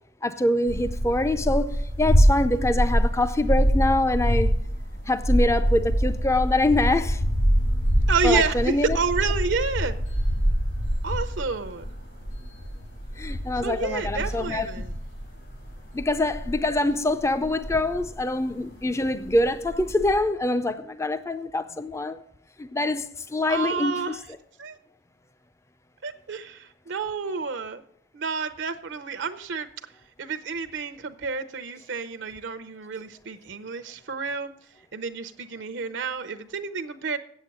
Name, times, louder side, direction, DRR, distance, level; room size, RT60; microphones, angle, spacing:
voice 1, 0.2-4.6 5.1-7.2 8.2-9.0 13.2-14.8 15.9-22.2 22.6-24.2, left 2 dB, 15° left, 0.4 m, -25 dB
sound 1, 0.7-18.4 18.8-18.9 19.2-20.2, equal, 70° left, 4.8 m, -25 dB
voice 2, 8.1-10.0 11.0-11.9 13.6-14.9 23.5-24.2 24.6-24.8 26.0-27.8 28.1-29.7 30.2-34.5 34.9-37.2, right 5 dB, 80° right, 0.7 m, -29 dB
8.2 x 8.1 x 7.6 m
head